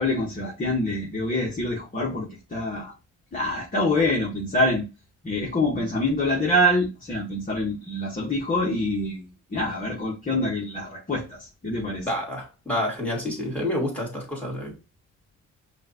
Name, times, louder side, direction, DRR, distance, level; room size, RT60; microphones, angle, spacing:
voice 1, 0.0-2.9 3.3-4.8 5.2-12.1, left 1 dB, 30° left, 1.6 m, -25 dB
voice 2, 12.0-14.7, left 1 dB, 5° left, 2.5 m, -28 dB
5.5 x 2.7 x 3.0 m
cardioid pair, 90°, 30 cm